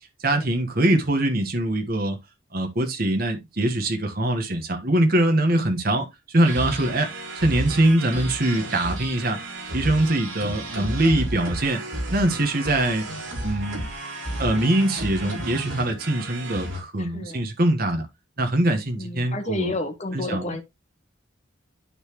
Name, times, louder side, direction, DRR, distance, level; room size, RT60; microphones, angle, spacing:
voice 1, 0.2-2.2 2.5-7.1 7.3-9.4 9.7-11.8 12.1-13.0 13.4-13.9 14.4-18.1 18.4-19.7 20.1-20.5, right 1 dB, 45° right, 1.4 m, -23 dB
sound 1, 6.4-16.8, right 1 dB, 75° right, 3.8 m, -32 dB
voice 2, 17.0-17.5 19.0-20.6, left 2 dB, 35° left, 1.3 m, -31 dB
12.0 x 4.1 x 3.1 m
head